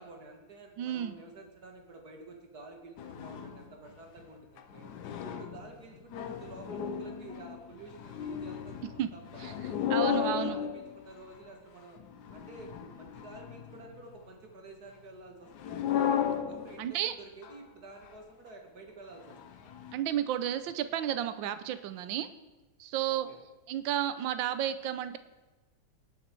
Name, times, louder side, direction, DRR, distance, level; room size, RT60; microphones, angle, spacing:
voice 1, 0.0-4.9 5.2-9.6 9.9-12.0 12.3-19.7 23.1-23.4, right 3 dB, 50° right, 2 dB, 2.3 m, -50 dB
voice 2, 0.8-1.2 9.0-9.1 9.4-9.5 9.9-10.6 16.8-17.1 19.9-22.3 22.8-23.3 23.7-25.2, right 11 dB, 80° right, 11 dB, 1.4 m, -32 dB
sound 1, 3.0-3.7 4.2-4.3 4.6-11.4 12.0-14.0 15.6-16.9 17.4-17.6 18.0-18.2 19.3-19.9, left 9 dB, 65° left, 1.3 m, -35 dB
18.5 x 7.6 x 4.6 m, 1.1 s
omnidirectional pair, 2.1 m